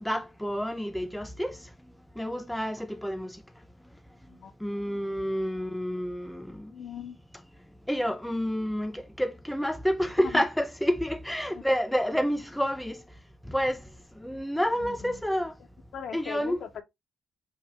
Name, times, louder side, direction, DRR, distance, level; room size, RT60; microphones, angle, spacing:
voice 1, 0.0-1.6 2.2-3.3 4.6-6.7 7.9-13.0 13.5-13.8 14.2-15.5 16.1-16.6, equal, 5° left, 0.4 m, -29 dB
voice 2, 6.7-7.2 10.2-10.4 11.5-11.7 14.7-15.2 15.9-16.8, left 8 dB, 70° left, 0.6 m, -40 dB
4.8 x 2.2 x 2.7 m
cardioid pair, 90°, 0 cm